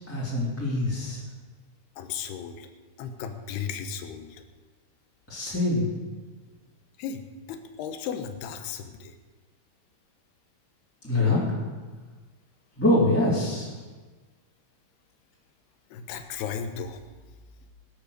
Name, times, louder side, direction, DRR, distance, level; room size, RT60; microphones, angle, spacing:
voice 1, 0.1-1.2 5.3-5.9 11.0-11.4 12.8-13.7, left 2 dB, 5° left, -9 dB, 2.9 m, -24 dB
voice 2, 2.0-2.7 3.0-4.4 7.0-7.2 7.5-9.1 15.9-17.0, left 7 dB, 80° left, 6 dB, 3.1 m, -35 dB
19.5 x 8.0 x 6.7 m, 1.3 s
omnidirectional pair, 4.6 m